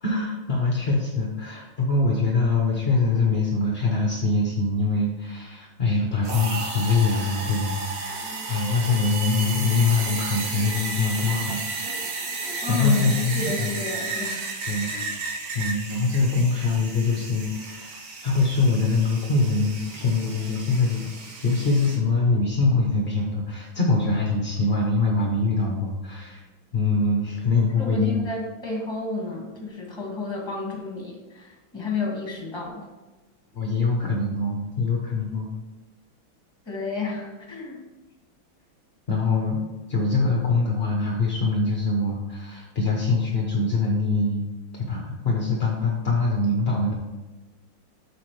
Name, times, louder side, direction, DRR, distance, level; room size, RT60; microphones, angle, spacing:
voice 1, 0.0-11.6 12.7-13.7 14.7-14.9 15.5-21.1 21.4-26.4 26.7-28.2 33.5-35.5 39.1-44.5 44.8-46.9, left 3 dB, 50° left, -1 dB, 0.8 m, -23 dB
sound 1, 6.2-22.0, right 3 dB, 75° right, 2.0 m, -33 dB
sound 2, 8.1-14.1, right 2 dB, 45° right, 0.8 m, -45 dB
voice 2, 12.6-14.6 14.8-15.1 27.8-32.8 36.6-37.8, left 4 dB, 15° left, -1 dB, 1.6 m, -31 dB
7.5 x 5.9 x 3.2 m, 1.2 s
omnidirectional pair, 2.2 m